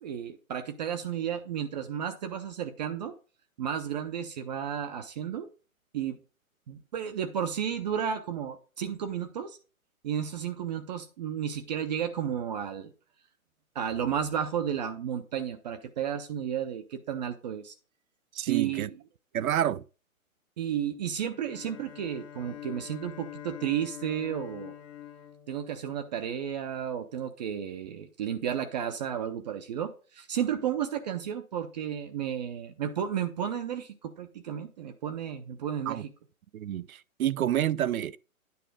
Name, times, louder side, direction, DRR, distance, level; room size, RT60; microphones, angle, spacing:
voice 1, 0.0-3.1 3.6-5.5 5.9-6.2 6.7-9.6 10.0-12.9 13.7-17.7 18.5-19.0 20.6-24.7 25.5-36.1, right 9 dB, 30° right, 0.6 m, -33 dB
voice 2, 18.3-18.9 19.3-19.8 35.9-36.0 36.5-38.2, right 11 dB, 75° right, 0.6 m, -28 dB
Bowed string instrument, 21.3-26.5, left 11 dB, 20° left, 0.7 m, -46 dB
9.5 x 4.9 x 4.9 m
hypercardioid pair, 140°, 43 cm